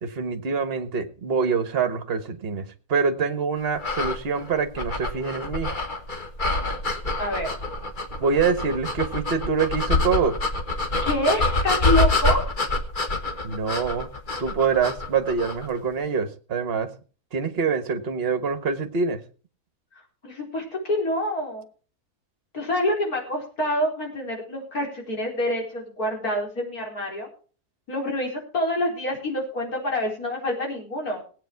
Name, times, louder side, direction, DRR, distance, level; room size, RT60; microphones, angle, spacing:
voice 1, 0.0-5.7 8.2-10.4 13.4-14.1 14.4-16.9 17.3-19.2, right 5 dB, 40° right, 8 dB, 1.5 m, -25 dB
sound 1, 3.8-15.7, left 2 dB, 35° left, 1.5 m, -26 dB
voice 2, 7.2-7.5 11.0-12.4 20.2-21.6 22.5-27.3 27.9-31.2, left 1 dB, 70° left, 0 dB, 4.7 m, -26 dB
18.0 x 8.7 x 4.6 m, 0.39 s
omnidirectional pair, 1.6 m